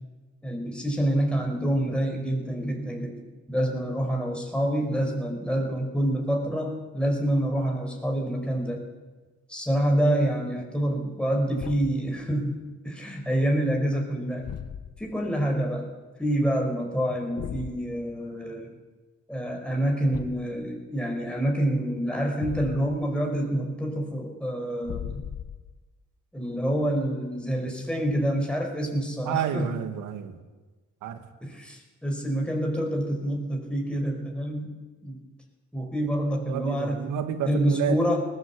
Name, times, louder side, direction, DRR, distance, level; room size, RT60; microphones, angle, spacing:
voice 1, 0.4-3.2 3.5-8.8 9.5-12.6 12.8-14.4 15.0-15.9 16.2-18.7 19.3-25.2 26.3-29.8 31.4-35.2 35.7-37.0 37.5-38.2, right 1 dB, 5° left, 1 dB, 5.0 m, -27 dB
Thump thud, 11.6-12.1 14.4-15.1 17.4-17.8 20.1-20.6 22.4-23.1 24.8-25.8, left 8 dB, 55° left, 1.3 m, -37 dB
voice 2, 29.2-30.4 31.0-31.2 36.4-38.0, right 8 dB, 90° right, 8 dB, 2.2 m, -29 dB
20.0 x 17.5 x 8.4 m, 1.3 s
cardioid pair, 90°, 30 cm